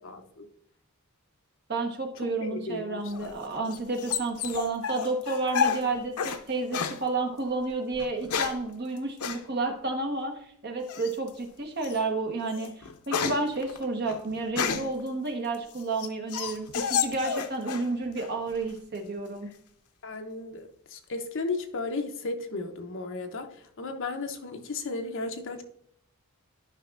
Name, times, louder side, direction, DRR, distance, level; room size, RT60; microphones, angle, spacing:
voice 1, 0.0-0.5 2.2-3.4 19.5-19.6 20.0-25.6, left 3 dB, 60° left, 5 dB, 0.8 m, -35 dB
voice 2, 1.7-19.5, right 3 dB, 50° right, 2 dB, 1.2 m, -31 dB
sound 1, 3.1-6.4 6.7-7.0 7.9-8.7 9.2-9.4 10.9-11.3 11.8-12.0 12.4-15.0 15.5-17.9 18.2-18.8, left 7 dB, 85° left, 0.6 m, -31 dB
11.0 x 5.2 x 2.5 m, 0.68 s
head